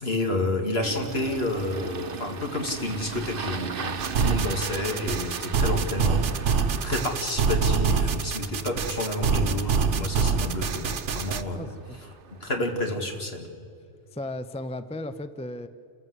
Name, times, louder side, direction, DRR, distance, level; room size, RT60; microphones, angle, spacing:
voice 1, 0.0-11.7 12.4-13.5, left 2 dB, 60° left, 3 dB, 2.7 m, -30 dB
Engine starting, 0.8-13.2, right 6 dB, 50° right, 1.1 m, -39 dB
sound 1, 4.0-11.4, right 5 dB, 80° right, 1.3 m, -25 dB
voice 2, 14.1-15.7, left 1 dB, 5° left, 11 dB, 0.6 m, -35 dB
29.0 x 14.5 x 8.1 m, 2.6 s
omnidirectional pair, 1.2 m